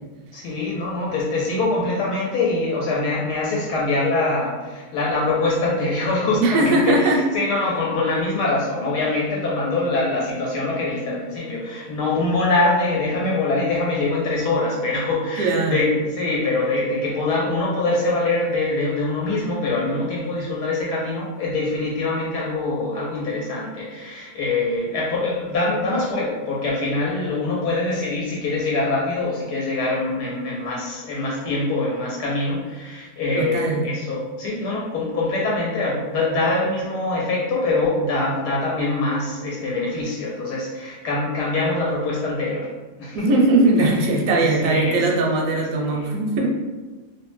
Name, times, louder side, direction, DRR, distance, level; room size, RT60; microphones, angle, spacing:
voice 1, 0.3-42.7 43.0-43.3 43.8-43.9 44.3-45.0 45.9-46.1, left 2 dB, 80° left, -4 dB, 1.1 m, -24 dB
voice 2, 6.4-7.2 15.4-15.9 33.4-33.9 43.1-46.5, right 2 dB, 70° right, 0 dB, 0.9 m, -19 dB
2.7 x 2.1 x 3.1 m, 1.2 s
omnidirectional pair, 1.7 m